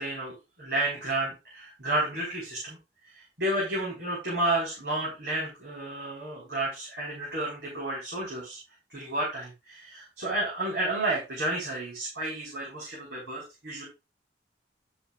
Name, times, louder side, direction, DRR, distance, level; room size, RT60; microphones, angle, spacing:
voice 1, 0.0-2.8 3.1-8.6 8.9-13.8, right 1 dB, 70° right, -4 dB, 4.7 m, -31 dB
11.5 x 7.2 x 2.5 m, 0.26 s
head